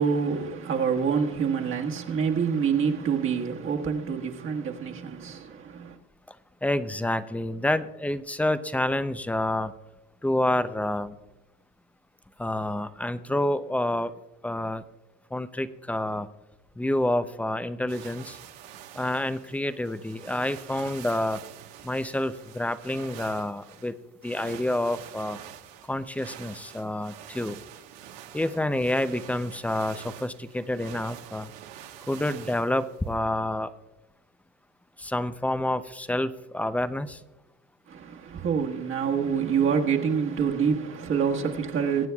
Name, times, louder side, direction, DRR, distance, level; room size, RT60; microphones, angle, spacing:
voice 1, 0.0-6.0 37.9-42.1, right 6 dB, 40° right, 1.5 m, -26 dB
voice 2, 6.6-9.7 10.2-11.2 12.4-14.1 14.4-14.8 15.3-16.3 16.8-18.4 18.9-21.4 21.8-24.0 24.2-25.4 25.9-27.6 28.3-31.5 32.1-33.7 35.0-37.2, left 1 dB, 5° left, 0.5 m, -28 dB
sound 1, 17.9-33.2, right 10 dB, 75° right, 1.3 m, -46 dB
23.0 x 9.4 x 2.3 m
supercardioid pair, 110°, 31 cm